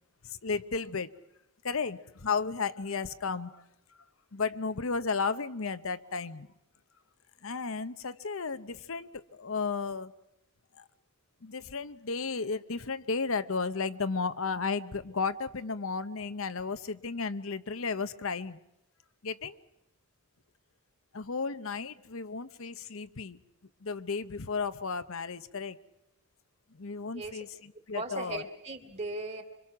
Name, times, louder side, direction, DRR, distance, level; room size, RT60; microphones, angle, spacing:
voice 1, 0.2-1.1 1.6-3.6 4.3-6.5 7.4-10.1 10.7-10.8 11.4-18.6 19.2-19.6 21.1-23.4 23.8-25.8 26.7-28.4, left 4 dB, 70° left, 0.8 m, -34 dB
voice 2, 27.1-27.4 27.9-29.4, right 2 dB, 30° right, 2.8 m, -37 dB
26.5 x 24.5 x 6.0 m
head